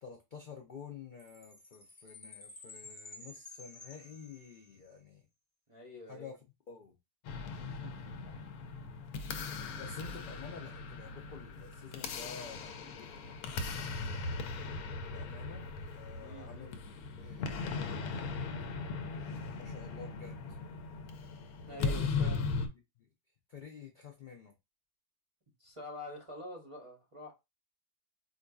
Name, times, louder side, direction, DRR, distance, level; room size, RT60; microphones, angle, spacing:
voice 1, 0.0-5.2 6.1-6.3 6.7-6.9 8.3-8.7 9.8-14.4 15.1-16.8 17.2-18.9 19.6-20.4 21.5-22.3 23.0-23.1 23.5-24.5, left 6 dB, 60° left, 0.5 m, -50 dB
Chime, 1.2-4.9, left 3 dB, 25° left, 0.8 m, -52 dB
voice 2, 5.7-6.3 7.6-8.1 16.2-16.8 21.7-22.5 25.6-27.3, left 1 dB, 30° right, 0.6 m, -46 dB
sound 1, 7.3-22.7, left 4 dB, 90° left, 1.1 m, -38 dB
4.5 x 2.6 x 2.3 m
omnidirectional pair, 1.5 m